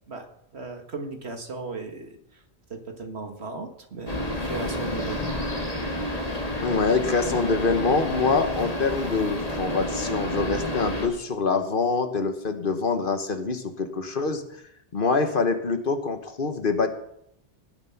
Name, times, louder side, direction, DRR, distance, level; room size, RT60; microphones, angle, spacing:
voice 1, 0.5-2.4 2.7-6.0, right 3 dB, 85° right, 5 dB, 2.1 m, -37 dB
sound 1, 4.1-11.1, left 1 dB, 35° left, 2.2 m, -29 dB
voice 2, 6.6-14.4 14.9-16.9, left 4 dB, 55° left, 8 dB, 1.4 m, -25 dB
19.0 x 7.6 x 5.9 m, 0.75 s
omnidirectional pair, 1.1 m